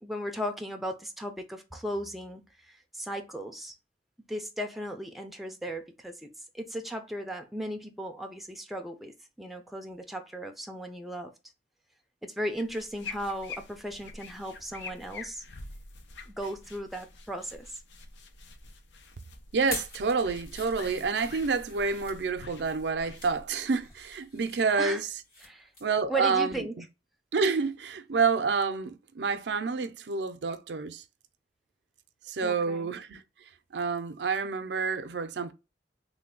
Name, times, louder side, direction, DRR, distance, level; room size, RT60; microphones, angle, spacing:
voice 1, 0.0-3.8 4.3-11.3 12.2-15.4 16.3-17.7 24.8-25.0 25.4-25.7 26.1-26.8 32.4-32.9, right 1 dB, ahead, 0.4 m, -36 dB
sound 1, 12.5-24.5, left 3 dB, 85° left, 0.6 m, -47 dB
voice 2, 19.5-25.1 25.8-26.6 27.3-31.0 32.3-33.2 33.7-35.5, right 5 dB, 75° right, 0.5 m, -28 dB
sound 2, 19.6-22.2 22.8-23.4 23.8-25.5 25.7-26.0 26.4-26.5, left 1 dB, 55° left, 1.9 m, -44 dB
3.2 x 2.2 x 3.6 m
head